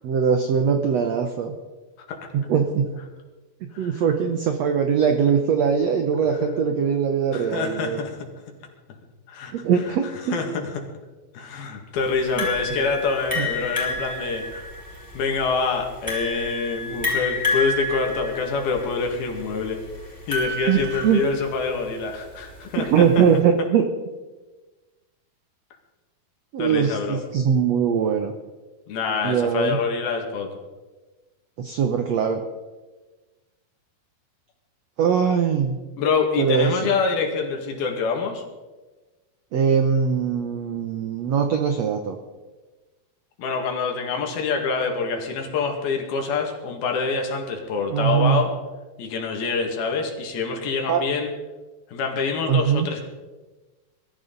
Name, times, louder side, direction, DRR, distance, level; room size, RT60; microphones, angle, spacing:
voice 1, 0.0-1.5 2.3-2.9 3.8-8.0 9.5-10.4 12.3-12.5 13.4-13.7 20.7-21.2 22.8-23.8 26.5-28.3 29.2-29.8 31.6-32.4 35.0-35.8 36.4-36.8 39.5-42.2 47.9-48.4 50.9-51.0 52.5-52.9, right 7 dB, 85° right, 5 dB, 1.5 m, -21 dB
voice 2, 7.3-8.3 9.3-9.5 10.3-10.7 11.3-14.7 15.1-19.8 20.3-23.2 26.6-27.2 28.9-30.6 36.0-38.4 43.4-48.5 49.0-51.3 51.9-53.0, left 4 dB, 75° left, 3 dB, 3.8 m, -26 dB
sound 1, 12.4-21.7, left 2 dB, ahead, 4.7 m, -29 dB
22.0 x 13.5 x 4.0 m, 1.2 s
omnidirectional pair, 4.4 m